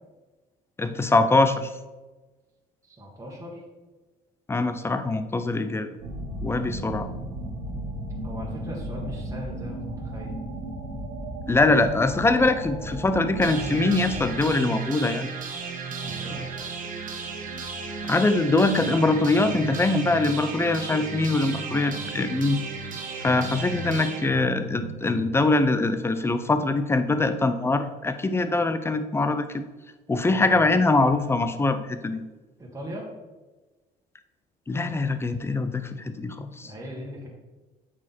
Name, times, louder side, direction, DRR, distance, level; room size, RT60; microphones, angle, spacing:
voice 1, 0.8-1.7 4.5-5.9 6.4-7.1 11.5-15.3 18.0-22.6 23.2-29.6 30.1-32.2 34.7-36.7, left 2 dB, 15° left, 9 dB, 0.6 m, -23 dB
voice 2, 2.8-3.6 8.2-10.4 16.0-16.4 30.2-30.7 32.6-33.1 36.6-37.3, equal, 20° right, -2 dB, 1.8 m, -39 dB
sound 1, 6.0-14.4, right 1 dB, 75° right, 2.1 m, -35 dB
sound 2, 13.4-25.4, right 4 dB, 55° right, 1.5 m, -34 dB
8.6 x 4.9 x 4.3 m, 1.2 s
cardioid pair, 110°, 17 cm